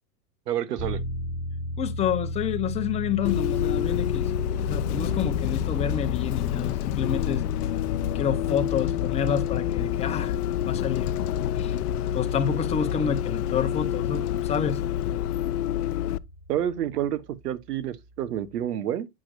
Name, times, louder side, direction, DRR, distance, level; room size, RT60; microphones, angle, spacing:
voice 1, 0.5-1.0 16.5-19.1, right 11 dB, 80° right, 1.1 m, -29 dB
sound 1, 0.8-17.1, equal, 15° right, 2.3 m, -37 dB
voice 2, 1.8-4.3 4.6-7.4 8.1-10.4 10.6-11.1 11.5-11.8 12.1-14.8, left 8 dB, 15° left, 0.7 m, -28 dB
Bus, 3.2-16.2, left 11 dB, 75° left, 0.6 m, -27 dB
8.7 x 5.7 x 2.5 m
hypercardioid pair, 135°, 47 cm